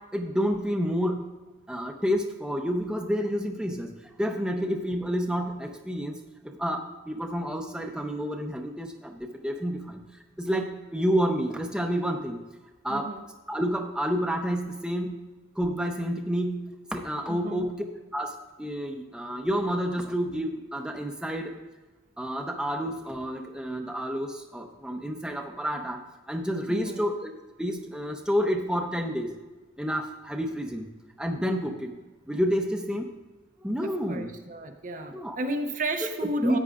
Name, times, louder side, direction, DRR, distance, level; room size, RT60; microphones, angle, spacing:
voice 1, 0.1-1.3 1.7-10.1 10.4-12.4 12.8-13.1 13.5-15.2 15.6-17.8 18.1-21.6 22.2-26.0 26.3-27.3 27.6-29.3 29.8-30.9 31.2-31.9 32.3-33.1 33.6-34.3 35.1-35.3 36.4-36.6, equal, 5° right, 2 dB, 0.6 m, -29 dB
voice 2, 12.9-13.2 17.3-17.7 26.7-27.0 33.8-36.6, right 1 dB, 40° right, 6 dB, 0.6 m, -33 dB
13.5 x 8.8 x 2.4 m, 1.2 s
head